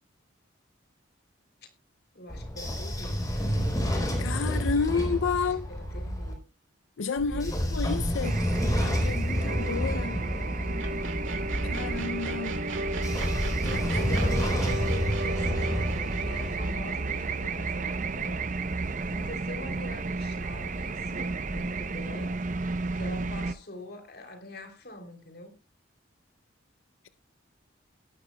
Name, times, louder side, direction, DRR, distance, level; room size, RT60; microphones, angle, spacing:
voice 1, 2.1-3.2 5.4-6.4 7.3-7.7 13.9-18.5 18.8-22.4 22.9-25.6, left 1 dB, 50° left, 3.2 m, -44 dB
Train / Sliding door, 2.3-6.3 7.2-12.0 12.8-16.7, equal, 20° left, 3.7 m, -29 dB
voice 2, 4.2-5.7 7.0-8.4 8.8-10.2 11.6-12.6 13.6-13.9, left 5 dB, 85° left, 0.5 m, -31 dB
sound 1, 8.2-23.5, right 3 dB, 40° right, 0.7 m, -32 dB
sound 2, 9.5-18.7, right 1 dB, 85° right, 2.2 m, -37 dB
18.5 x 11.5 x 2.3 m
head